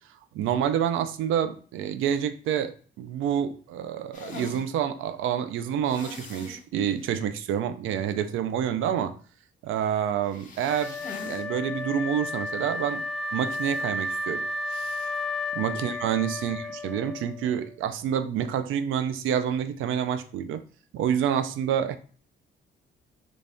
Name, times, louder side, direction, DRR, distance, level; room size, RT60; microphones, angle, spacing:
voice 1, 0.3-9.2 9.6-13.0 13.3-15.1 15.5-20.6 20.9-22.0, right 9 dB, 80° right, 10 dB, 0.4 m, -28 dB
sound 1, 4.1-4.7 5.8-6.6 7.0-7.1 7.5-7.6 10.2-11.4 11.8-11.9 13.5-13.8, left 4 dB, 45° left, 0.9 m, -42 dB
Wind instrument woodwind instrument, 10.6-17.7, left 2 dB, 5° left, 0.4 m, -33 dB
3.2 x 2.5 x 3.4 m, 0.42 s
cardioid pair, 90°, 20 cm